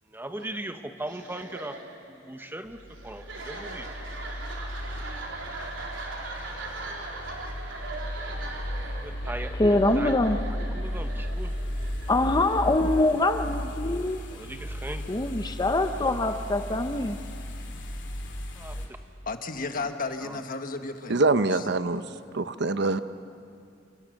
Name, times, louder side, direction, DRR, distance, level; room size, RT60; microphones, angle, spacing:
voice 1, 0.1-1.8 2.1-2.8 3.0-3.9 8.8-9.6 9.9-11.5 14.3-15.1 18.6-19.0 19.8-19.9 20.2-20.4, right 1 dB, 10° right, 7 dB, 1.2 m, -39 dB
sound 1, 1.0-12.7, right 2 dB, 85° right, 4.0 m, -40 dB
sound 2, 2.7-18.9, equal, 70° left, 3.1 m, -35 dB
voice 2, 9.6-10.4 12.1-14.2 15.1-17.2, left 2 dB, 20° left, 8 dB, 0.8 m, -24 dB
voice 3, 19.3-21.2 21.5-21.6, left 3 dB, 50° left, 7 dB, 1.5 m, -33 dB
voice 4, 21.1-22.0 22.3-23.0, right 3 dB, 65° right, 11 dB, 0.8 m, -24 dB
28.5 x 27.0 x 6.5 m, 2.4 s
head